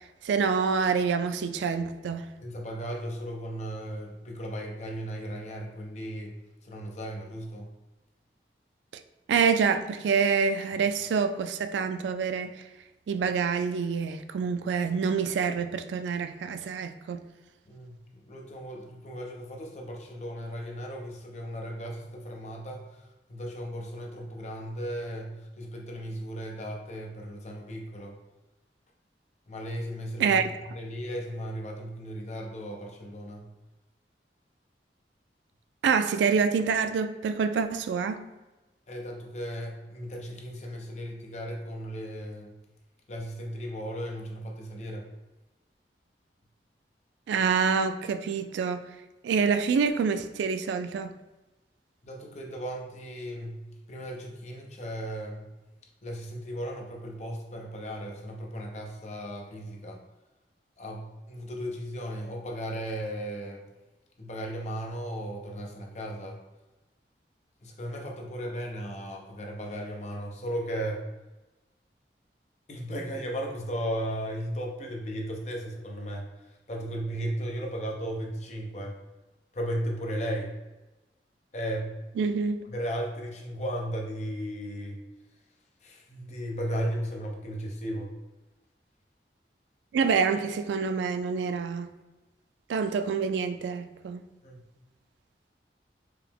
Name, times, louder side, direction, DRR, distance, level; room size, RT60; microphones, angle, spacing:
voice 1, 0.2-2.2 9.3-12.5 13.1-17.2 30.2-30.4 35.8-38.2 47.3-48.8 49.2-51.1 82.2-82.6 89.9-91.9 92.7-94.2, right 6 dB, 90° right, 0.3 m, -26 dB
voice 2, 2.4-6.3 6.6-7.7 17.7-28.1 29.5-30.4 30.7-33.5 38.9-42.5 43.1-45.1 52.0-55.5 56.0-60.0 60.8-63.6 64.2-66.4 67.6-71.0 72.7-76.3 76.7-78.9 79.5-80.5 81.5-82.0 82.7-85.0 85.8-88.1 94.4-94.6, equal, 40° left, 0.6 m, -36 dB
4.7 x 2.0 x 3.4 m
head